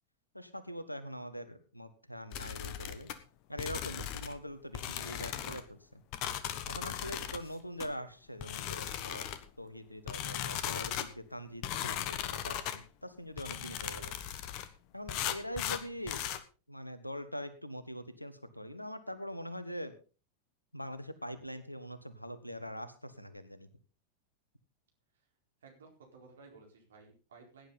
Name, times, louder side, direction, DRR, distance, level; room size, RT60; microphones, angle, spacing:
voice 1, 0.3-3.1 3.5-6.0 6.7-9.3 9.6-14.1 14.9-16.2 16.7-20.0 20.7-23.7, equal, 90° left, 13 dB, 1.4 m, -43 dB
sound 1, 2.3-3.2 3.6-4.4 4.7-5.6 6.1-7.4 7.8-7.9 8.4-9.5 10.1-11.1 11.6-12.8 13.4-14.7 15.1-16.4, left 11 dB, 45° left, 1.2 m, -37 dB
voice 2, 25.6-27.7, right 4 dB, 65° right, 2 dB, 4.4 m, -56 dB
17.0 x 10.0 x 4.0 m, 0.35 s
figure-of-eight pair, 90°, 0 cm